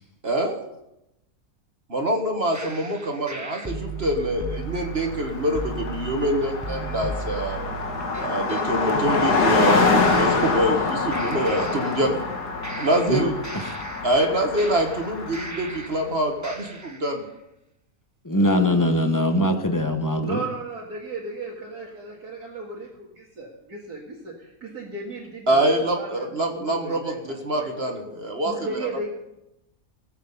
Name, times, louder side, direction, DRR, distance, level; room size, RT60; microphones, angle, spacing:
voice 1, 0.2-0.6 1.9-7.6 8.2-12.2 12.8-13.3 14.0-17.2 18.3-18.6 25.5-27.1 27.4-28.8, right 1 dB, 40° right, 3 dB, 1.8 m, -25 dB
sound 1, 2.5-8.7 9.6-10.9 11.1-12.3 12.6-16.1 16.4-17.1, right 3 dB, 15° right, 0.9 m, -36 dB
Car passing by, 4.5-4.6 4.8-15.8, left 3 dB, 90° left, 2.1 m, -25 dB
voice 2, 18.2-20.4, left 1 dB, 15° left, 5 dB, 1.1 m, -21 dB
voice 3, 20.2-27.7 28.5-29.1, right 3 dB, 75° right, -5 dB, 2.6 m, -35 dB
18.5 x 7.9 x 5.5 m, 0.87 s
omnidirectional pair, 1.6 m